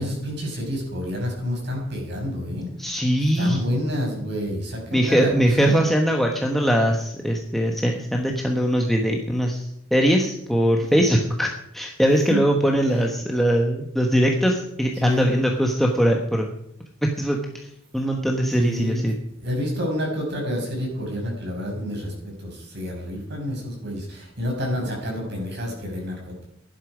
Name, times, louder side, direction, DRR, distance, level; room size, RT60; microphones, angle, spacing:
voice 1, 0.0-3.0 3.4-5.8 10.8-11.0 12.1-12.4 15.0-15.3 18.6-19.1 19.4-26.4, equal, 55° right, 0 dB, 6.0 m, -29 dB
voice 2, 2.8-3.6 4.9-16.5 17.0-19.2, equal, ahead, 1 dB, 1.2 m, -21 dB
16.5 x 11.5 x 5.0 m, 0.77 s
head